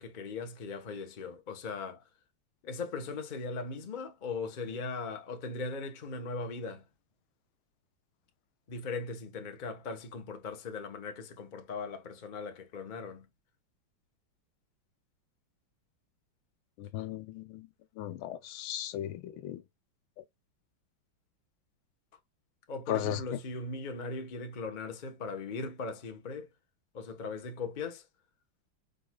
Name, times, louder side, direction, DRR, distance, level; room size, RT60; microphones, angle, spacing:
voice 1, 0.0-2.0 2.6-6.8 8.7-13.3 22.7-26.5 26.9-28.0, left 4 dB, 40° left, 0.7 m, -39 dB
voice 2, 16.8-17.7 18.0-19.6 22.9-23.2, left 12 dB, 85° left, 1.5 m, -36 dB
5.1 x 3.8 x 2.2 m
omnidirectional pair, 2.2 m